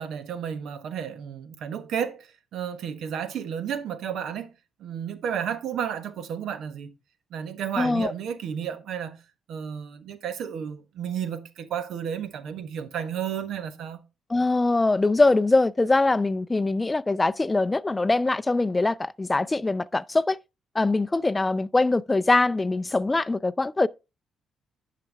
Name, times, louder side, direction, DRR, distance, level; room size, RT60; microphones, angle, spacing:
voice 1, 0.0-4.5 4.8-6.9 7.3-9.2 9.5-14.0, right 8 dB, 75° right, 1.2 m, -32 dB
voice 2, 7.8-8.1 14.3-20.4 20.7-23.9, left 2 dB, 20° left, 0.4 m, -23 dB
10.5 x 5.8 x 3.4 m
cardioid pair, 90°, 0 cm